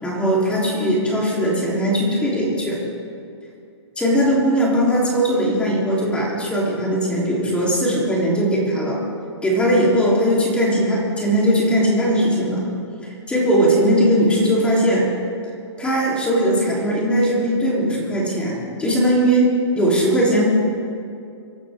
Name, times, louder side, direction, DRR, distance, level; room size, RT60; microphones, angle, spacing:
voice 1, 0.0-2.8 4.0-9.0 9.4-12.7 13.0-15.1 15.8-20.5, equal, 5° left, -4 dB, 3.6 m, -19 dB
24.0 x 12.5 x 3.7 m, 2.5 s
hypercardioid pair, 135°, 15 cm